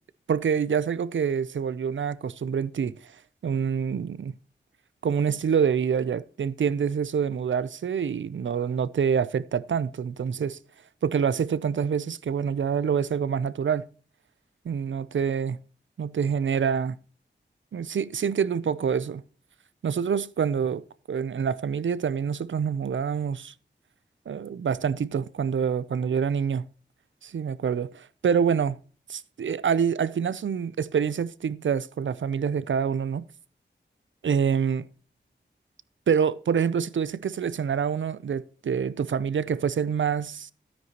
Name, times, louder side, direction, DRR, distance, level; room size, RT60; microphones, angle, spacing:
voice 1, 0.3-3.1 3.4-4.4 5.0-10.6 11.0-13.9 14.6-15.6 16.0-17.0 17.7-19.2 19.8-23.5 24.3-26.6 27.2-28.8 29.1-33.2 34.2-34.9 36.1-40.5, right 7 dB, 90° right, 0.5 m, -26 dB
12.5 x 9.6 x 2.9 m
wide cardioid pair, 70°, 19 cm